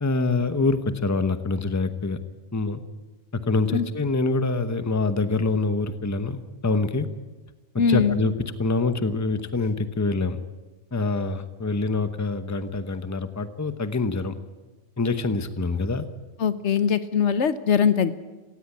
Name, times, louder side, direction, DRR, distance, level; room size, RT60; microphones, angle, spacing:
voice 1, 0.0-2.2 2.5-2.8 3.5-7.1 7.9-8.3 8.6-10.4 10.9-14.3 15.0-16.1, left 3 dB, 15° left, 11 dB, 0.9 m, -25 dB
voice 2, 7.8-8.1 16.4-18.1, left 7 dB, 75° left, 13 dB, 1.2 m, -21 dB
17.0 x 16.0 x 9.8 m, 1.2 s
omnidirectional pair, 1.2 m